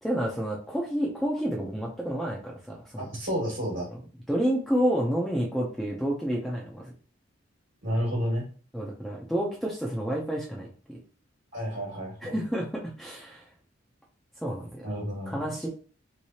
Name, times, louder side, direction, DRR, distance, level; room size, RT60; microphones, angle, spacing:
voice 1, 0.0-3.1 4.3-6.9 8.7-11.0 12.2-13.4 14.4-14.9 15.3-15.7, equal, ahead, -3 dB, 0.5 m, -29 dB
voice 2, 3.0-3.9 7.8-8.5 11.5-12.3 14.8-15.4, equal, 55° right, -3 dB, 1.4 m, -30 dB
3.2 x 3.2 x 2.8 m, 0.40 s
head